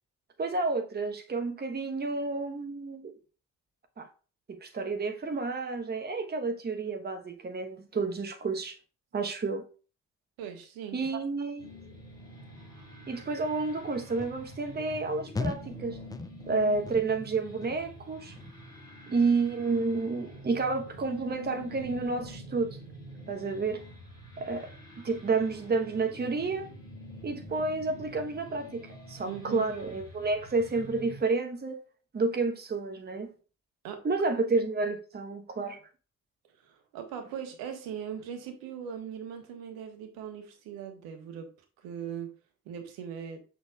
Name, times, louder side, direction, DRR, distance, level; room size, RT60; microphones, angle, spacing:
voice 1, 0.4-3.1 4.0-4.1 4.5-8.8 9.1-9.6 10.9-11.7 13.1-16.0 16.5-18.4 19.1-22.8 23.3-23.8 24.4-24.7 25.0-26.7 27.2-31.8 32.1-33.3 34.0-35.8, right 3 dB, 25° right, 1.1 m, -30 dB
voice 2, 10.4-11.2 29.2-29.7 33.8-34.0 36.6-41.5 41.8-42.3 42.6-43.4, right 8 dB, 65° right, 1.3 m, -40 dB
sound 1, 11.6-31.2, equal, 85° left, 3.4 m, -47 dB
sound 2, 14.2-14.4 14.9-15.1 15.3-15.8 16.1-16.5 16.8-17.3 17.6-18.0 18.4-18.7 19.1-19.3, left 3 dB, 10° left, 0.5 m, -37 dB
6.8 x 6.4 x 2.4 m
figure-of-eight pair, 40°, 39 cm